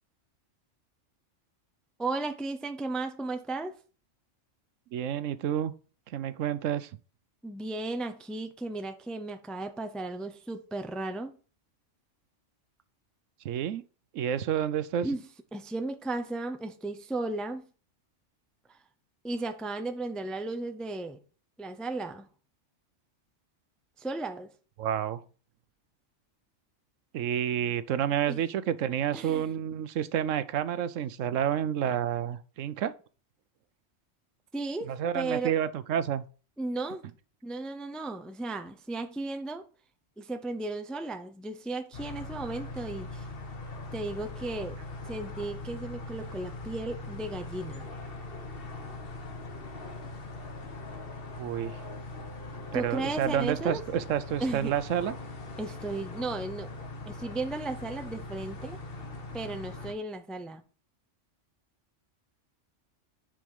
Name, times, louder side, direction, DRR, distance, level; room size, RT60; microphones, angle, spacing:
voice 1, 2.0-3.7 7.4-11.4 15.0-15.2 15.5-17.7 19.2-21.2 21.6-22.3 24.0-24.5 28.3-28.4 29.1-29.4 34.5-35.5 36.6-37.1 37.4-39.6 40.2-43.2 43.9-44.8 45.1-47.9 52.7-53.8 54.4-54.7 55.6-56.7 57.1-58.8 59.3-60.6, right 2 dB, ahead, 0.4 m, -35 dB
voice 2, 4.9-5.7 6.1-6.9 13.4-13.8 14.1-15.1 24.8-25.2 27.1-32.9 34.8-36.3 51.4-51.8 52.7-55.1, right 9 dB, 85° right, 1.0 m, -29 dB
sound 1, 41.9-59.9, left 2 dB, 50° left, 1.4 m, -41 dB
7.7 x 4.9 x 5.4 m
omnidirectional pair, 1.3 m